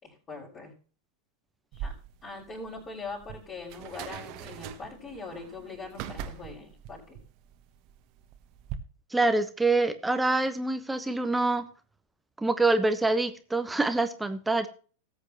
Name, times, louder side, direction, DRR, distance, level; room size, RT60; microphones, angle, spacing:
voice 1, 0.0-0.7 1.7-1.9 2.2-7.2, left 3 dB, 25° left, -6 dB, 5.0 m, -41 dB
sound 1, 1.7-8.8, right 9 dB, 40° right, 1.3 m, -42 dB
voice 2, 9.1-11.7 12.4-14.7, right 2 dB, 5° right, 10 dB, 1.0 m, -25 dB
19.0 x 8.1 x 3.0 m, 0.39 s
figure-of-eight pair, 90°, 0 cm